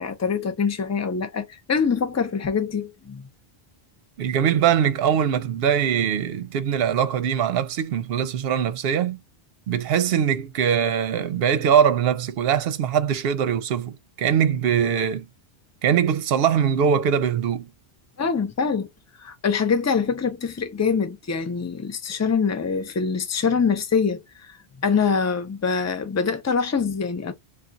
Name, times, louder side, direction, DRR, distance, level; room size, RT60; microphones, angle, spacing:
voice 1, 0.0-3.3 18.2-18.9 19.2-24.5 24.8-27.3, left 5 dB, 25° left, 0.4 m, -24 dB
voice 2, 4.2-9.2 9.7-15.3 15.8-17.7, right 8 dB, 75° right, 0.8 m, -22 dB
2.3 x 2.3 x 3.8 m
omnidirectional pair, 1.0 m